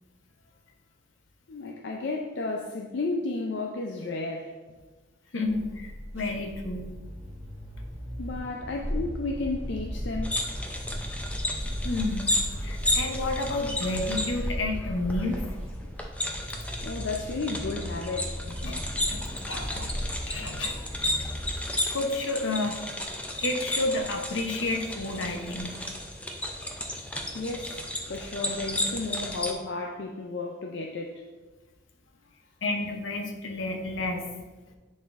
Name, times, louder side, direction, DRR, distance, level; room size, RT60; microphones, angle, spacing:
voice 1, 1.5-4.5 8.2-10.4 16.8-18.4 27.3-31.2, left 3 dB, 65° left, 1 dB, 0.5 m, -33 dB
voice 2, 5.3-6.9 11.8-15.4 18.6-19.9 20.3-21.3 21.9-22.8 23.4-25.8 32.6-34.2, left 2 dB, 80° left, 4 dB, 0.8 m, -31 dB
sound 1, 5.5-21.6, equal, 15° right, 1.8 m, -36 dB
sound 2, 10.2-29.5, left 1 dB, 5° left, 0.4 m, -33 dB
10.0 x 4.2 x 2.5 m, 1.3 s
head